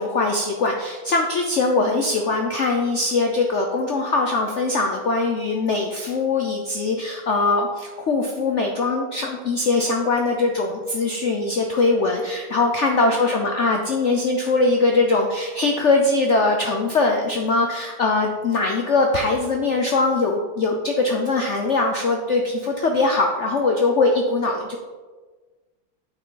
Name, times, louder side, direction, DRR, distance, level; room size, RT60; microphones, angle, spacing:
voice 1, 0.0-24.8, left 3 dB, 75° left, 2 dB, 0.6 m, -21 dB
8.3 x 6.0 x 3.8 m, 1.4 s
omnidirectional pair, 2.1 m